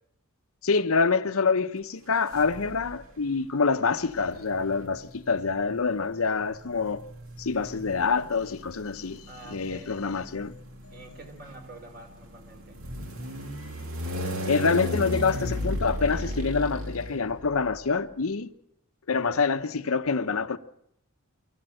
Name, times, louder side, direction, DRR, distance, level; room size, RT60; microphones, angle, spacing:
voice 1, 0.6-7.0 7.4-10.5 14.5-18.5 19.1-20.6, left 4 dB, 75° left, 0.8 m, -26 dB
sound 1, 2.3-3.0 4.1-17.8, equal, 70° right, 2.5 m, -35 dB
voice 2, 9.3-10.2 10.9-12.8 19.1-19.4, right 2 dB, 45° right, 3.9 m, -47 dB
24.5 x 14.5 x 7.7 m
head